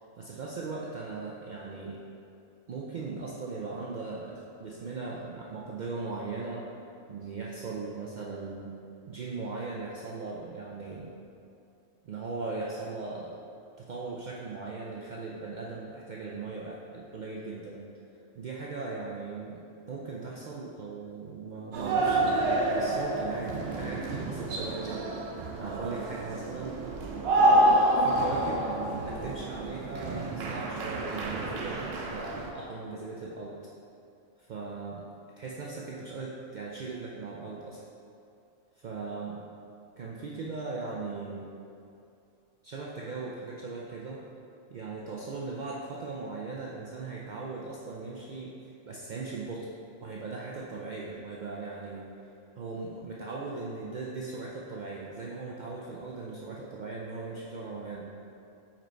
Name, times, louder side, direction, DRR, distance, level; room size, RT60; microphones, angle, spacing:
voice 1, 0.2-2.0 2.7-6.8 7.1-8.7 9.1-11.2 12.0-13.4 13.8-17.8 18.4-19.6 19.9-25.1 25.6-27.2 27.4-33.7 34.5-35.0 35.4-37.8 38.8-39.5 40.0-41.5 42.6-44.3 44.7-48.6 48.9-49.7 50.0-52.1 52.6-58.1, right 3 dB, 80° right, -4 dB, 0.4 m, -38 dB
sound 1, 21.7-32.5, right 1 dB, 60° right, 0.7 m, -28 dB
5.0 x 4.4 x 4.4 m, 2.6 s
omnidirectional pair, 1.4 m